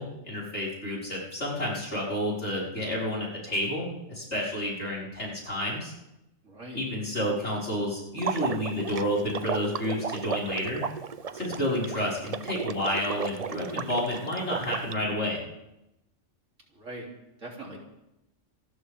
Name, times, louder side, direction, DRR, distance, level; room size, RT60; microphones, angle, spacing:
voice 1, 0.0-5.9 6.7-10.8 11.3-15.4, left 1 dB, 65° left, -6 dB, 5.8 m, -30 dB
voice 2, 6.4-6.8 16.7-17.1 17.4-17.8, right 1 dB, 85° right, -1 dB, 3.8 m, -41 dB
Water / Liquid, 8.2-14.9, right 6 dB, 40° right, 0.6 m, -34 dB
26.5 x 14.0 x 3.6 m, 0.90 s
omnidirectional pair, 1.3 m